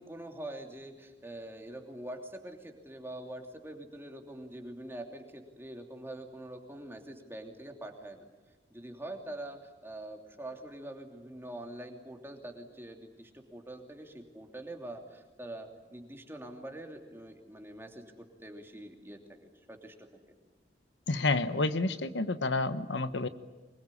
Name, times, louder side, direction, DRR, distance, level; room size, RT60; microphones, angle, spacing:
voice 1, 0.0-8.3 8.7-20.1, right 1 dB, 15° right, 3 dB, 2.9 m, -44 dB
voice 2, 21.1-23.3, left 2 dB, 80° left, 12 dB, 1.1 m, -29 dB
25.0 x 21.5 x 9.9 m, 1.2 s
head